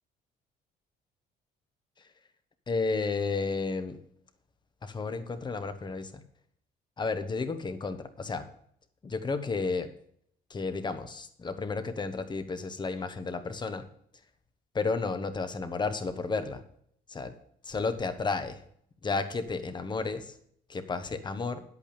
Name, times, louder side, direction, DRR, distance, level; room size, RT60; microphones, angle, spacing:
voice 1, 2.7-4.0 4.8-6.2 7.0-8.5 9.0-9.9 10.5-13.8 14.7-16.6 17.1-17.3 17.6-18.6 19.0-20.3 20.7-21.6, left 4 dB, 25° left, 9 dB, 1.2 m, -32 dB
10.5 x 8.4 x 5.1 m, 0.67 s
cardioid pair, 110°, 17 cm